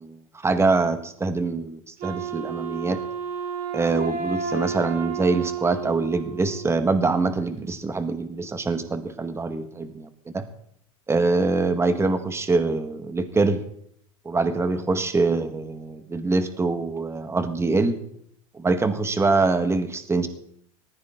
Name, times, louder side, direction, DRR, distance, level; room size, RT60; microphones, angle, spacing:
voice 1, 0.0-3.0 3.7-10.1 10.3-10.4 11.1-13.6 14.3-18.0 18.5-20.3, right 3 dB, 15° right, 9 dB, 1.8 m, -24 dB
Wind instrument woodwind instrument, 2.0-7.0, right 6 dB, 50° right, 4.1 m, -32 dB
18.5 x 15.0 x 3.9 m, 0.67 s
hypercardioid pair, 95°, 18 cm